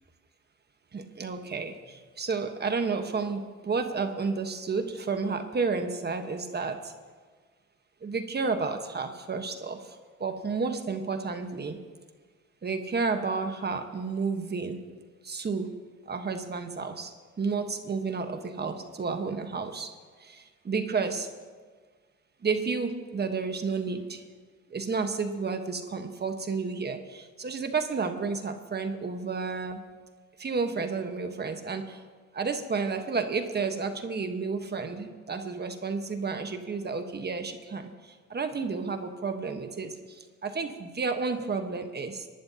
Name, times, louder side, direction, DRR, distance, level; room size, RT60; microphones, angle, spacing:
voice 1, 0.9-6.9 8.0-11.8 12.6-14.8 15.2-15.7 16.1-17.1 17.4-19.9 20.2-21.3 22.4-24.2 24.7-29.8 30.4-32.0 32.3-37.9 38.3-42.3, right 4 dB, 35° right, 6 dB, 1.2 m, -31 dB
28.0 x 11.5 x 2.9 m, 1.5 s
cardioid pair, 90°, 30 cm